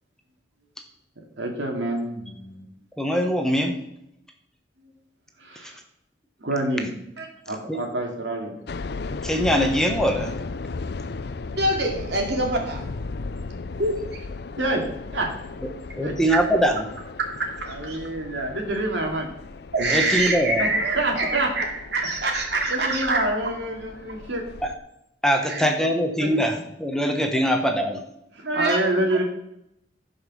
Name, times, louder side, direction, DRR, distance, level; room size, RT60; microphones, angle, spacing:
voice 1, 1.4-2.7 4.8-4.9 5.4-5.8 6.4-6.9 7.5-8.5 14.6-14.8 15.1-15.3 16.0-16.1 17.7-19.3 20.6-21.5 22.7-24.4 26.2-26.3 28.4-29.2, right 1 dB, 85° right, 1 dB, 2.4 m, -27 dB
voice 2, 3.0-3.7 7.7-7.8 9.2-10.3 16.0-16.9 19.9-20.7 24.6-24.7 25.2-28.0, equal, 5° left, 4 dB, 1.1 m, -22 dB
sound 1, 8.7-24.8, left 3 dB, 65° left, 0.5 m, -36 dB
voice 3, 11.6-12.9 13.8-13.9 16.3-16.4 17.2-18.0 19.7-23.3 25.4-25.7 27.3-27.4 28.4-29.2, right 2 dB, 65° right, 1 dB, 2.6 m, -25 dB
14.5 x 5.4 x 6.2 m, 0.81 s
head